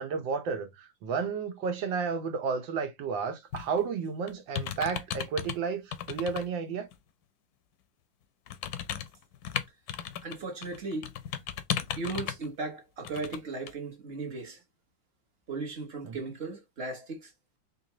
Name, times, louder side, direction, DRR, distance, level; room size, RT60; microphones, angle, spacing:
voice 1, 0.0-6.9, right 5 dB, 85° right, 1.6 m, -32 dB
sound 1, 3.5-3.8 4.3-5.6 5.9-6.4 6.9-7.0 8.5-10.4 10.6-12.5 13.0-13.4 13.7-13.8, left 9 dB, 70° left, 0.9 m, -35 dB
voice 2, 10.2-11.1 12.0-14.6 15.5-17.3, right 3 dB, 40° right, 1.0 m, -36 dB
4.5 x 2.7 x 2.9 m
omnidirectional pair, 2.0 m